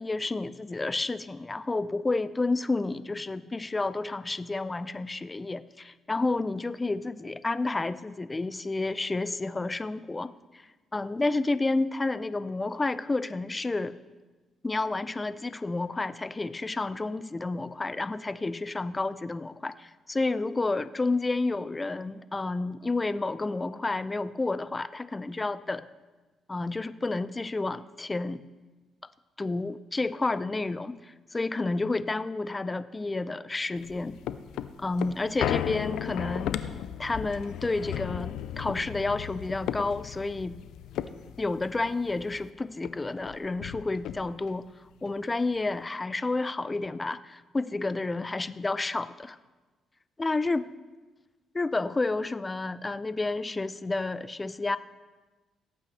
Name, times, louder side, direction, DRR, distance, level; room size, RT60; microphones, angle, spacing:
voice 1, 0.0-14.0 14.6-25.9 26.5-28.4 29.4-34.2 34.8-36.6 37.0-40.6 41.4-44.7 45.0-49.4 50.2-50.7 51.5-54.8, left 3 dB, 20° left, 15 dB, 0.4 m, -30 dB
sound 1, 33.8-42.5 42.8-42.9 43.2-44.6 45.1-45.2, left 11 dB, 80° left, 0.4 m, -35 dB
17.5 x 8.5 x 3.3 m, 1.2 s
cardioid pair, 90°, 0 cm